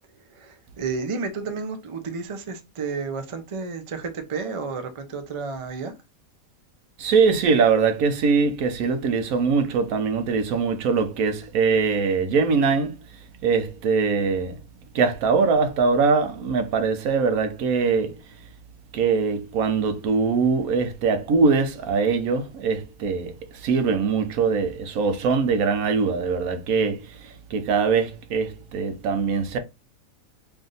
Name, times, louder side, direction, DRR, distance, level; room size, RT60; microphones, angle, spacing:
voice 1, 0.2-5.9, right 4 dB, 50° right, 0.3 m, -31 dB
voice 2, 7.0-12.9 13.4-14.6 14.9-18.1 18.9-29.6, right 5 dB, 80° right, 1.2 m, -22 dB
3.4 x 2.6 x 3.8 m
omnidirectional pair, 1.5 m